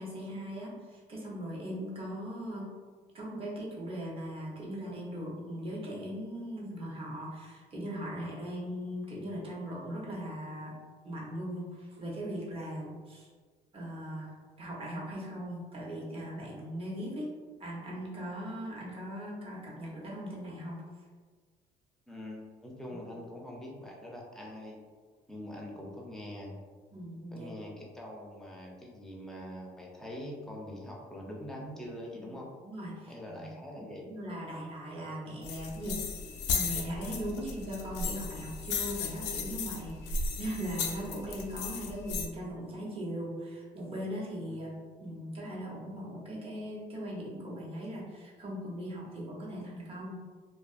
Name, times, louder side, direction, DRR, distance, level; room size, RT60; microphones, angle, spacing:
voice 1, 0.0-2.6 3.1-10.8 11.0-13.3 13.7-17.3 17.6-20.8 22.9-23.0 26.9-27.5 32.1-32.3 32.6-36.0 36.5-44.7 45.0-50.2, equal, 35° right, -4 dB, 0.8 m, -39 dB
voice 2, 22.1-24.8 25.3-26.5 27.3-32.5 33.1-34.1 44.5-44.6, left 1 dB, 5° left, -2 dB, 0.5 m, -43 dB
sound 1, 35.4-42.3, left 4 dB, 80° left, 0.4 m, -35 dB
2.4 x 2.3 x 2.4 m, 1.5 s
cardioid pair, 110°, 17 cm